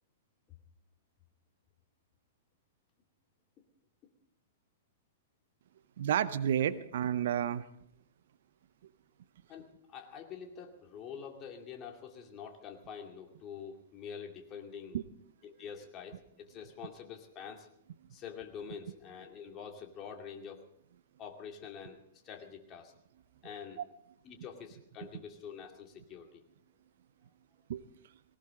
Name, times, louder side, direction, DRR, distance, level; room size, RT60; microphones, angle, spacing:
voice 1, 6.0-7.7 14.9-15.0 23.8-23.9 27.7-27.8, right 10 dB, 60° right, 15 dB, 0.7 m, -30 dB
voice 2, 9.5-15.0 15.4-17.7 18.1-20.7 21.2-22.0 22.2-22.9 23.4-23.8 24.2-26.4, left 7 dB, 30° left, 3 dB, 2.4 m, -46 dB
18.5 x 18.5 x 3.8 m, 0.71 s
figure-of-eight pair, 105°, 0 cm